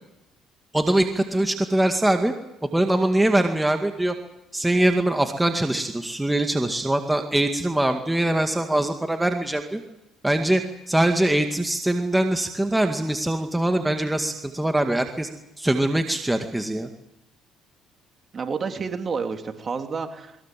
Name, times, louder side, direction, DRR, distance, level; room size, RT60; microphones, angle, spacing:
voice 1, 0.7-2.3 2.7-4.2 4.5-9.8 10.2-10.6 10.9-15.3 15.6-16.9, right 1 dB, 10° right, 5 dB, 2.1 m, -22 dB
voice 2, 18.3-20.4, right 5 dB, 40° right, 5 dB, 3.0 m, -29 dB
22.0 x 22.0 x 7.7 m, 0.91 s
supercardioid pair, 85°, 0 cm